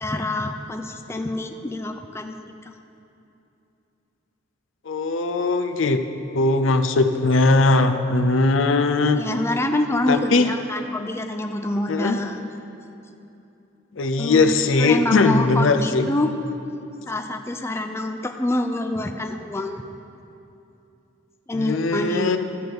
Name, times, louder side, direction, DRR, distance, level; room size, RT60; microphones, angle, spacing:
voice 1, 0.0-2.5 7.1-7.2 9.2-12.4 14.2-16.3 17.1-19.8 21.5-22.4, left 1 dB, 15° left, 5 dB, 0.4 m, -26 dB
voice 2, 4.9-6.0 6.3-9.2 10.1-10.5 11.9-12.2 13.9-16.1 21.5-22.4, left 3 dB, 75° left, 7 dB, 0.6 m, -19 dB
12.5 x 5.1 x 7.7 m, 2.8 s
head